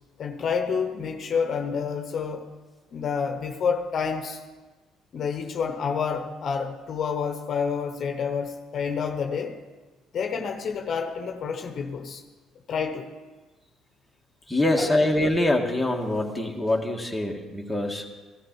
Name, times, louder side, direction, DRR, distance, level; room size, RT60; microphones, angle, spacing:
voice 1, 0.2-2.5 2.9-4.4 5.1-9.6 10.1-12.2 12.7-13.1 14.8-14.9, left 6 dB, 50° left, 6 dB, 1.0 m, -28 dB
voice 2, 14.5-18.1, left 1 dB, ahead, -1 dB, 1.8 m, -24 dB
16.0 x 12.5 x 4.6 m, 1.3 s
supercardioid pair, 90°, 0 cm